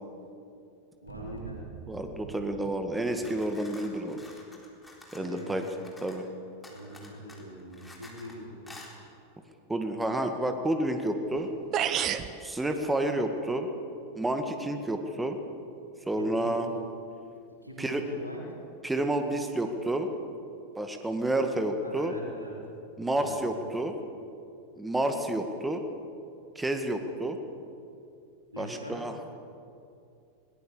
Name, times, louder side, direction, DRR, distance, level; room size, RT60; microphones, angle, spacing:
voice 1, 1.0-1.6 5.1-5.6 6.7-8.8 16.1-16.7 17.2-17.3 17.6-18.4 21.8-22.5 23.1-23.6 28.5-28.9, equal, 90° right, -4 dB, 4.6 m, -42 dB
sound 1, 1.1-4.0 4.2-4.3, right 6 dB, 55° right, 1.8 m, -46 dB
voice 2, 1.9-4.2 5.1-5.6 6.0-6.2 9.7-11.5 12.4-13.7 14.2-15.4 16.1-16.7 17.8-18.0 18.8-20.1 20.8-22.1 23.0-23.9 24.8-25.8 26.6-27.4 28.6-29.1, right 1 dB, 10° right, 6 dB, 1.9 m, -30 dB
sound 2, 2.9-6.3 6.6-8.4 8.7-8.9, left 2 dB, 10° left, 3.8 m, -50 dB
sound 3, 11.4-11.5 11.7-12.3, right 10 dB, 30° right, 1.0 m, -28 dB
22.0 x 20.0 x 7.1 m, 2.6 s
figure-of-eight pair, 90°, 0 cm